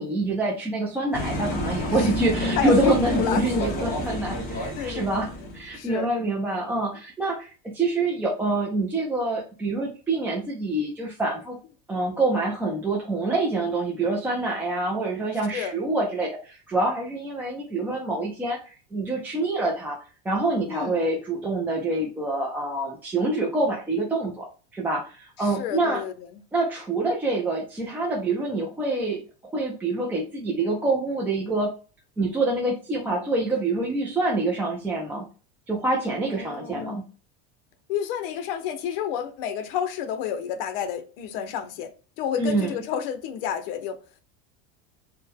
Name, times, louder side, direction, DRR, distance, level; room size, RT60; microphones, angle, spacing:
voice 1, 0.0-11.6 11.9-20.0 20.2-24.5 24.7-26.0 26.5-31.7 32.2-35.3 35.7-37.0 42.4-42.7, right 2 dB, 5° right, 0.3 m, -26 dB
sound 1, 1.1-5.8, left 1 dB, 30° left, 0.9 m, -29 dB
voice 2, 2.6-3.7 3.9-4.0 4.8-6.1 15.5-15.8 20.7-21.0 25.4-26.1 33.5-33.6 36.3-37.1 37.9-44.0, left 8 dB, 65° left, 0.7 m, -30 dB
4.2 x 2.1 x 3.5 m
supercardioid pair, 160°, 30 cm